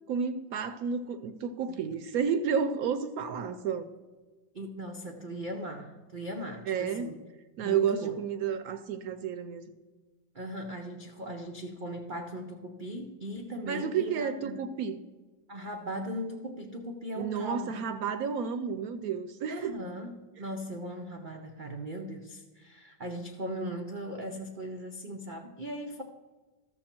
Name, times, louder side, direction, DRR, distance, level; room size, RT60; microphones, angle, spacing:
voice 1, 0.1-3.9 6.7-7.1 7.6-9.7 13.7-15.0 17.2-19.7, right 7 dB, 70° right, 11 dB, 0.9 m, -31 dB
voice 2, 4.5-7.2 7.6-8.2 10.3-14.6 15.5-17.8 19.5-20.1 20.4-26.0, equal, 90° right, 3 dB, 0.4 m, -39 dB
13.0 x 6.9 x 4.3 m, 1.3 s
omnidirectional pair, 1.9 m